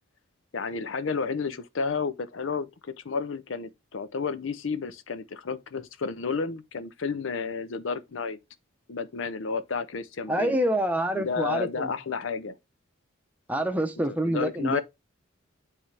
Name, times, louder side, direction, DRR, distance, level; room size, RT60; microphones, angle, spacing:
voice 1, 0.5-8.4 8.9-10.6 11.2-12.6 14.0-14.8, left 5 dB, 70° left, 0.6 m, -31 dB
voice 2, 10.3-11.9 13.5-14.8, right 1 dB, 5° right, 0.7 m, -26 dB
9.9 x 3.4 x 3.3 m
head